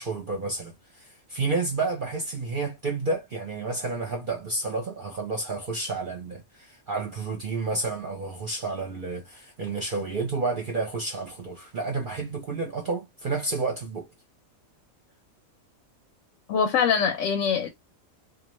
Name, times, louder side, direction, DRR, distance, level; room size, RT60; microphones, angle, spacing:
voice 1, 0.0-14.1, right 3 dB, 50° right, 0.7 m, -30 dB
voice 2, 16.5-17.7, left 6 dB, 80° left, 1.0 m, -23 dB
2.5 x 2.3 x 3.0 m
omnidirectional pair, 1.4 m